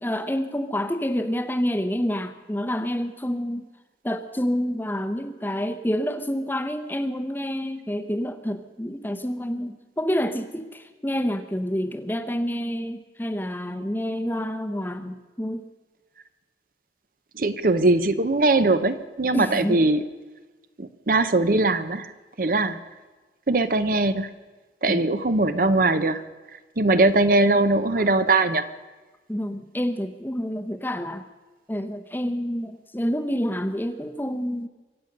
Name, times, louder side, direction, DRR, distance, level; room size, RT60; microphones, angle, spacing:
voice 1, 0.0-3.7 4.0-15.6 19.3-19.9 24.9-25.1 29.3-31.3 31.7-34.7, equal, 10° left, 8 dB, 0.8 m, -28 dB
voice 2, 17.4-20.0 20.8-22.1 22.4-22.8 23.5-24.3 24.8-26.2 26.8-28.7, right 2 dB, 50° right, 12 dB, 0.7 m, -21 dB
24.5 x 8.2 x 6.6 m, 1.3 s
head